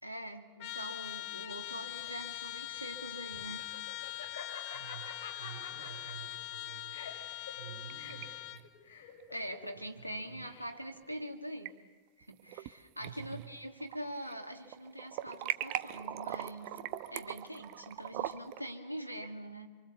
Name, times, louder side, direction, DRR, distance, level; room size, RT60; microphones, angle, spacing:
voice 1, 0.0-3.7 9.3-11.7 12.2-16.8 17.1-19.7, equal, 90° right, 4 dB, 2.0 m, -43 dB
Trumpet, 0.6-8.7, left 17 dB, 45° left, 1.0 m, -42 dB
Laughter, 1.6-11.0, left 6 dB, 60° left, 7.1 m, -49 dB
voice 2, 4.7-7.1 7.6-8.6 9.7-10.4 13.0-13.5, right 8 dB, 70° right, 2 dB, 6.4 m, -50 dB
sound 1, 7.5-8.3 8.6-8.7 10.2-10.3 11.3-11.7 12.2-12.7 13.0-14.4 14.7-18.6, right 14 dB, 45° right, 1.0 m, -40 dB
27.0 x 24.5 x 7.1 m, 1.4 s
figure-of-eight pair, 90°, 0 cm